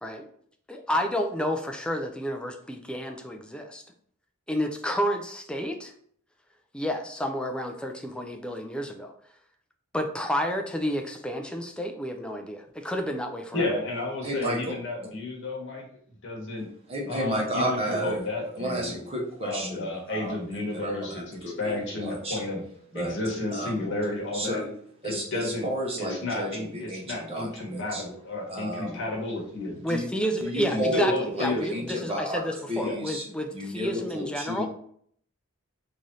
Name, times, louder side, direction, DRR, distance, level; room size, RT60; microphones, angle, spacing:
voice 1, 0.7-3.8 4.5-5.9 6.7-9.1 9.9-13.7 29.8-34.7, equal, 5° left, 4 dB, 0.3 m, -30 dB
voice 2, 13.5-15.9 16.2-16.7 17.1-19.0 19.4-22.7 22.9-24.6 25.0-25.7 26.0-29.9 30.7-31.8 32.8-33.0, left 2 dB, 60° left, -2 dB, 1.0 m, -32 dB
voice 3, 14.2-14.6 16.9-18.2 18.6-20.3 20.7-20.9 21.4-22.4 22.9-23.1 23.5-23.7 24.3-24.7 25.0-25.2 25.6-28.0 28.5-29.0 29.9-30.1 30.4-32.4 32.7-33.2 33.5-34.7, equal, 30° right, -2 dB, 0.8 m, -31 dB
3.1 x 2.7 x 3.7 m, 0.63 s
head